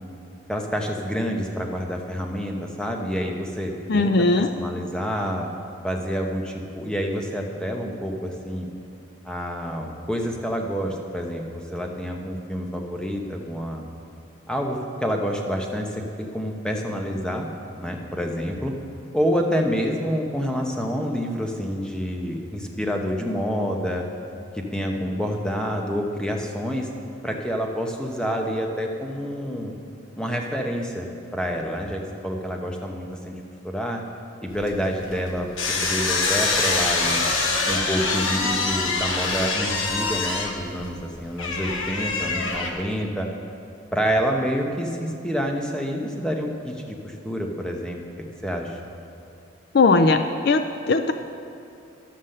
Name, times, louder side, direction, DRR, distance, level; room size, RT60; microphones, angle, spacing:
voice 1, 0.5-5.5 5.8-8.7 9.2-13.8 14.5-17.5 17.8-18.7 19.1-24.0 24.5-26.9 27.2-29.7 30.2-31.1 31.3-33.3 33.6-34.0 34.4-35.5 35.8-37.2 37.7-43.3 43.9-48.0 48.4-48.8, equal, 5° left, 1 dB, 0.9 m, -28 dB
voice 2, 3.9-4.5 49.7-51.1, left 3 dB, 50° left, 8 dB, 0.4 m, -19 dB
sound 1, 34.5-42.7, left 3 dB, 80° left, 1.2 m, -25 dB
11.5 x 7.4 x 6.5 m, 2.6 s
head